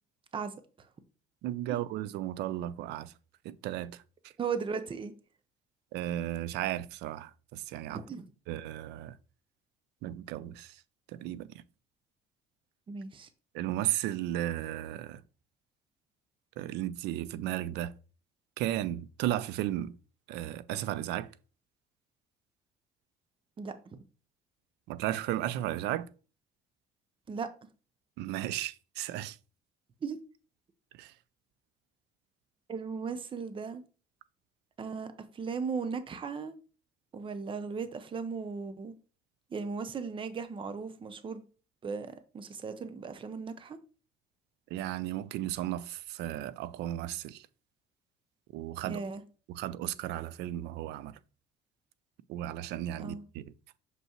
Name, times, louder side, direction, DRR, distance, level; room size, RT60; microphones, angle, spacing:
voice 1, 0.3-0.9 4.4-5.1 7.9-8.2 12.9-13.3 23.6-24.0 27.3-27.5 30.0-30.2 32.7-33.8 34.8-36.5 37.1-38.9 39.5-41.5 41.8-43.8 48.8-49.2 53.0-53.2, right 5 dB, 30° right, 0.7 m, -37 dB
voice 2, 1.4-3.1 3.4-4.3 5.9-8.0 8.5-9.2 10.0-10.8 11.1-11.6 13.5-15.2 16.6-17.9 18.6-20.0 20.3-21.3 24.9-26.1 28.2-29.4 30.9-31.1 44.7-47.5 48.5-49.0 49.5-51.2 52.3-53.5, right 13 dB, 85° right, 0.5 m, -35 dB
6.1 x 5.4 x 3.0 m
cardioid pair, 110°, 17 cm